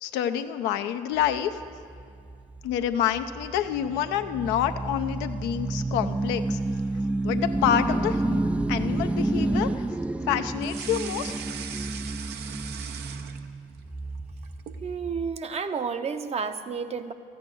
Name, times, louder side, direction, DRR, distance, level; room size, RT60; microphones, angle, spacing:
voice 1, 0.0-1.6 2.6-6.6 7.2-8.4 8.7-9.8 10.3-11.3, left 10 dB, 75° left, 8 dB, 0.6 m, -27 dB
sound 1, 1.2-15.4, right 2 dB, 5° right, 0.3 m, -30 dB
sound 2, 10.6-13.8 14.2-14.9, right 8 dB, 65° right, 0.7 m, -39 dB
voice 2, 14.8-17.1, right 5 dB, 35° right, 9 dB, 0.8 m, -31 dB
13.5 x 9.4 x 6.1 m, 2.2 s
hypercardioid pair, 65°, 18 cm